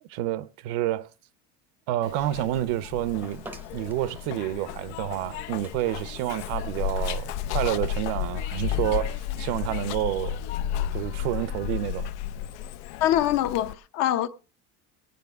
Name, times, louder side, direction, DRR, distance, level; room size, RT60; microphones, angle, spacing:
voice 1, 0.1-1.1 1.9-3.5 3.7-10.4 10.9-12.1, right 14 dB, 70° right, 0.7 m, -29 dB
Zipper (clothing), 2.0-13.7, left 10 dB, 85° left, 0.7 m, -33 dB
sound 1, 3.2-8.2, right 2 dB, 5° right, 0.6 m, -50 dB
voice 2, 13.0-14.3, left 12 dB, 50° left, 0.8 m, -24 dB
18.0 x 9.5 x 3.6 m
cardioid pair, 155°, 34 cm